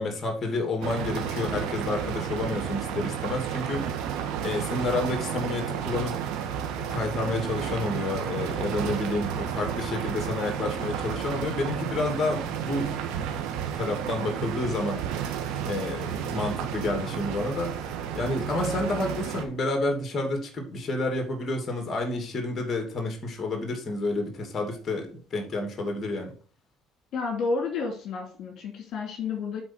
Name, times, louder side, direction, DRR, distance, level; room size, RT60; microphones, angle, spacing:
voice 1, 0.0-4.0 4.4-6.2 6.8-13.2 13.7-15.0 15.7-17.8 18.1-26.3, left 2 dB, 35° left, 3 dB, 2.6 m, -30 dB
sound 1, 0.8-19.4, right 8 dB, 80° right, 1.6 m, -32 dB
voice 2, 27.1-29.6, left 4 dB, 60° left, 2 dB, 2.6 m, -30 dB
9.1 x 4.2 x 5.7 m, 0.42 s
cardioid pair, 100°, 0 cm